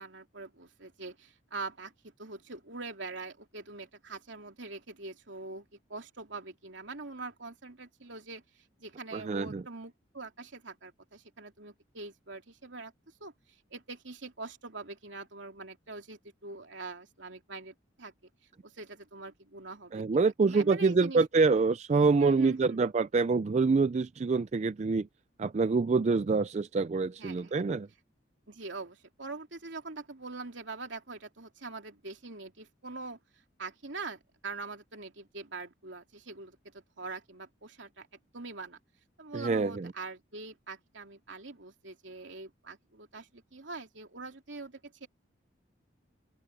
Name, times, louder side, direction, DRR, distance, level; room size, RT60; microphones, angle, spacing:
voice 1, 0.0-1.9 2.2-12.9 13.2-13.3 13.7-18.1 18.6-21.6 22.2-22.8 27.2-27.5 28.5-33.2 33.6-38.1 38.3-38.8 39.2-45.1, right 3 dB, 75° right, 2.9 m, -43 dB
voice 2, 9.1-9.6 19.9-25.1 25.4-27.9 39.3-39.9, right 4 dB, 35° right, 0.3 m, -26 dB
open air
head